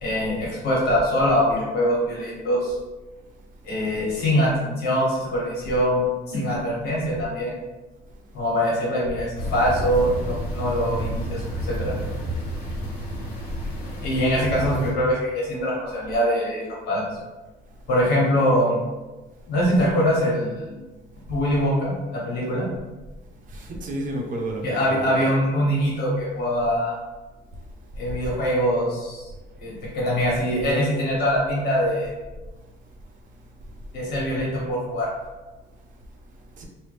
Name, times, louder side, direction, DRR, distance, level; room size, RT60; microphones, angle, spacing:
voice 1, 0.0-2.8 3.6-7.5 8.3-12.0 14.0-17.1 17.9-18.8 19.5-20.8 21.3-22.7 24.6-27.0 28.0-29.3 29.6-32.1 33.9-35.1, equal, 75° left, -5 dB, 1.4 m, -23 dB
sound 1, 9.4-14.9, right 1 dB, 90° left, 1.0 m, -30 dB
voice 2, 23.5-25.3 36.6-36.7, right 1 dB, 50° right, 0 dB, 0.7 m, -31 dB
3.3 x 2.3 x 3.2 m, 1.1 s
cardioid pair, 110°, 17 cm